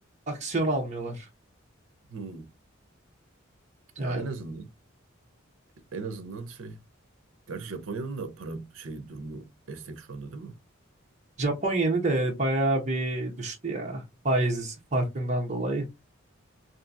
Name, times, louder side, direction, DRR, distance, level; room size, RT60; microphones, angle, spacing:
voice 1, 0.3-1.3 4.0-4.2 11.4-15.8, right 2 dB, 35° right, 0.8 m, -27 dB
voice 2, 2.1-2.5 4.0-4.7 5.9-6.8 7.5-10.5, right 3 dB, 80° right, 0.6 m, -37 dB
2.7 x 2.6 x 2.4 m
head